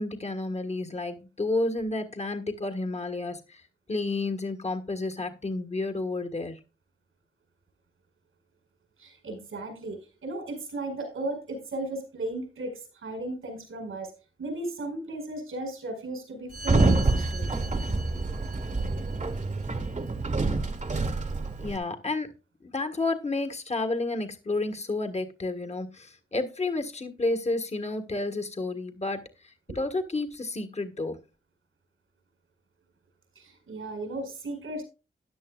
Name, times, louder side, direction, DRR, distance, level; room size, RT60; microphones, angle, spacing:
voice 1, 0.0-3.6 3.9-6.6 21.6-22.3 22.6-31.2, left 2 dB, 30° left, 7 dB, 1.5 m, -31 dB
voice 2, 9.0-14.1 14.4-17.5 29.7-29.8 33.4-34.8, right 2 dB, 85° right, 5 dB, 4.8 m, -35 dB
Sliding door, 16.5-21.8, right 2 dB, 35° right, 1.3 m, -27 dB
14.0 x 10.5 x 2.4 m, 0.31 s
wide cardioid pair, 100°, 21 cm